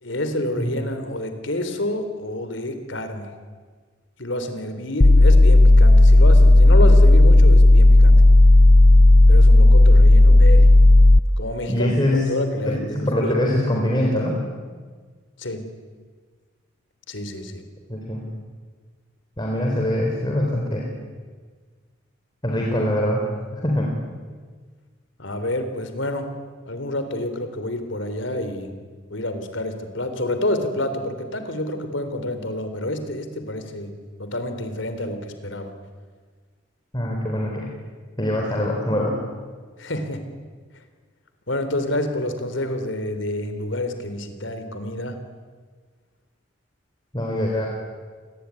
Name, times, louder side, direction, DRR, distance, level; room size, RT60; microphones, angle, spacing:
voice 1, 0.0-3.3 4.2-8.2 9.3-10.7 11.4-11.9 12.3-13.3 15.4-15.6 17.1-17.6 25.2-26.3 26.7-28.7 29.1-33.9 34.2-35.7 39.8-40.2 41.5-45.2, left 1 dB, 80° left, 9 dB, 3.7 m, -28 dB
sound 1, 5.0-11.2, left 2 dB, 45° left, 0.7 m, -11 dB
voice 2, 11.7-12.3 12.6-14.4 17.9-18.2 19.4-20.9 22.4-23.2 23.5-23.9 36.9-37.7 38.2-39.2 47.1-47.7, left 1 dB, 25° left, -1 dB, 3.9 m, -23 dB
28.0 x 21.5 x 9.8 m, 1.5 s
head